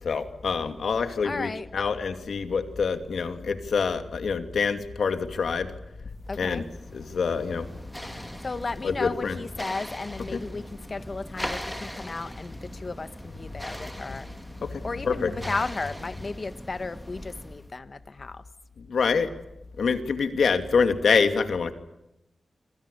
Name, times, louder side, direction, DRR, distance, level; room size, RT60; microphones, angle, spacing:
voice 1, 0.0-5.7 6.3-6.6 6.9-7.7 8.1-8.2 8.8-9.4 10.3-10.4 14.6-15.3 18.9-19.3 19.8-21.7, left 5 dB, 85° left, 9 dB, 2.7 m, -26 dB
voice 2, 1.2-1.7 6.3-6.6 8.4-14.3 14.8-18.4, left 3 dB, 45° left, 13 dB, 1.6 m, -34 dB
sound 1, 6.2-17.7, equal, 5° left, 2.6 m, -40 dB
27.0 x 26.5 x 7.0 m, 0.89 s
wide cardioid pair, 80°, 0 cm